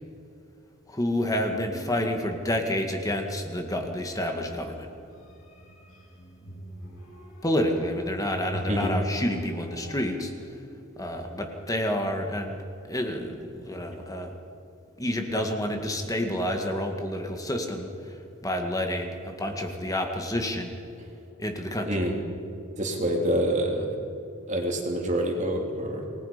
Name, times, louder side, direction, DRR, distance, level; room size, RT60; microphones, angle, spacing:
voice 1, 0.9-4.9 7.4-10.3 11.0-12.6 12.9-14.4 15.0-20.7 21.4-22.1, left 1 dB, 15° left, 4 dB, 1.9 m, -29 dB
sound 1, 1.3-2.3 2.7-3.2 4.0-10.0, right 1 dB, 85° left, 7.2 m, -41 dB
voice 2, 22.8-23.9 24.5-26.1, right 1 dB, 35° right, 1 dB, 3.1 m, -26 dB
28.5 x 19.5 x 5.2 m, 2.8 s
head